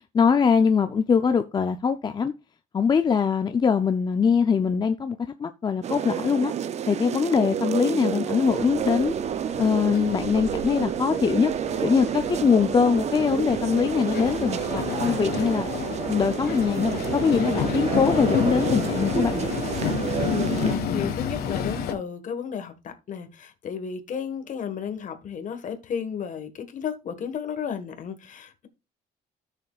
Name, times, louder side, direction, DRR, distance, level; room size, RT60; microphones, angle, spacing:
voice 1, 0.0-2.3 2.7-6.5 6.9-9.1 9.6-11.5 11.8-15.7 16.1-19.4, left 6 dB, 25° left, 0.5 m, -22 dB
sound 1, 5.8-20.8, right 9 dB, 40° right, 0.5 m, -29 dB
Train, 8.5-21.9, left 7 dB, 65° left, 1.5 m, -30 dB
voice 2, 20.2-28.7, left 7 dB, 50° left, 1.5 m, -33 dB
13.0 x 6.7 x 2.4 m
cardioid pair, 110°, 17 cm